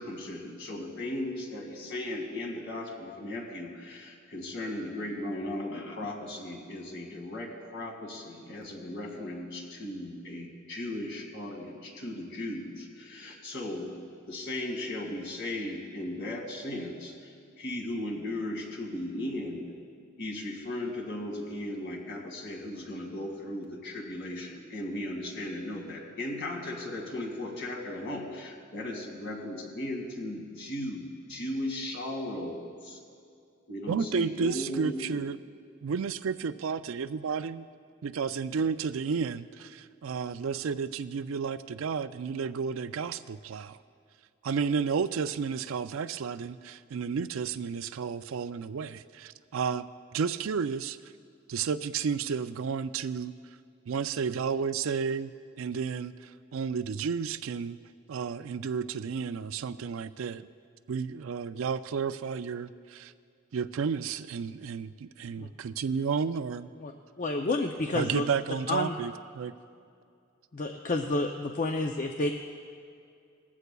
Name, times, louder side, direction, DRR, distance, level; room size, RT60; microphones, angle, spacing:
voice 1, 0.0-14.0 14.3-19.8 20.2-33.0 33.7-35.3, left 1 dB, 60° left, 0 dB, 2.1 m, -37 dB
voice 2, 33.9-35.4 35.8-37.7 38.0-43.8 44.4-49.8 50.1-51.0 51.5-53.3 53.9-55.3 55.6-57.8 58.1-60.5 60.9-63.1 63.5-66.7 67.9-69.5, right 6 dB, 70° right, 13 dB, 0.4 m, -32 dB
voice 3, 67.2-68.2 68.7-69.0 70.5-72.3, left 2 dB, 40° left, 3 dB, 0.5 m, -29 dB
19.0 x 14.5 x 2.3 m, 2.4 s
head